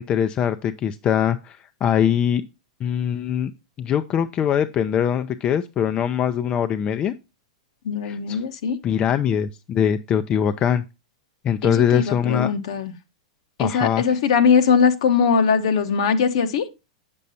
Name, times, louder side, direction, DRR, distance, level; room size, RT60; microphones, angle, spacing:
voice 1, 0.0-2.4 2.8-3.5 3.8-7.1 8.0-8.4 8.8-10.8 11.4-12.5 13.6-14.0, left 9 dB, 30° left, 0.5 m, -22 dB
voice 2, 7.8-8.8 11.6-12.9 13.6-16.7, left 6 dB, 65° left, 1.1 m, -20 dB
8.3 x 6.9 x 2.7 m
hypercardioid pair, 100°, 3 cm